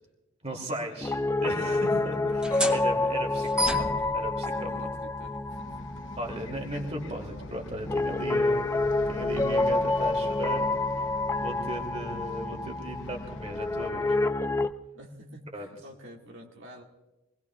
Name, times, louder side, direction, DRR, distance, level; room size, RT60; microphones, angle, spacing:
voice 1, 0.4-2.2 2.5-4.9 6.2-8.7 9.1-10.7 11.0-14.2 15.5-15.7, right 1 dB, 30° right, 2 dB, 2.6 m, -36 dB
Piano, 1.0-14.7, left 2 dB, 15° left, 0.5 m, -28 dB
sound 1, 2.3-9.5, equal, 5° right, 0.8 m, -38 dB
voice 2, 3.2-4.2 4.5-5.8 14.9-16.8, equal, 70° right, -1 dB, 2.0 m, -48 dB
Bus, 5.5-13.9, left 2 dB, 65° left, 1.0 m, -46 dB
26.0 x 20.0 x 2.4 m, 1.0 s
head